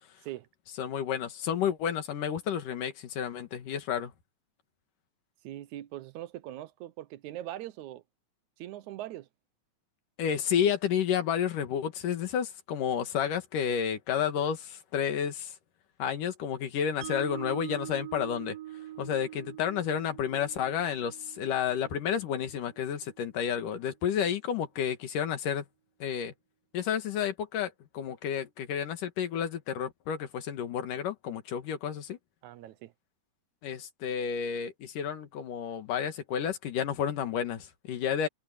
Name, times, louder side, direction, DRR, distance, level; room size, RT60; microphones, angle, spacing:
voice 1, 0.8-4.1 10.2-15.6 16.0-18.6 19.0-25.7 26.0-26.3 26.7-32.2 33.6-38.3, left 8 dB, 80° left, 3.4 m, -31 dB
voice 2, 5.4-8.0 8.6-9.3 32.4-32.9, right 14 dB, 70° right, 2.1 m, -41 dB
Mallet percussion, 17.0-23.2, right 13 dB, 90° right, 2.5 m, -44 dB
omnidirectional pair, 3.7 m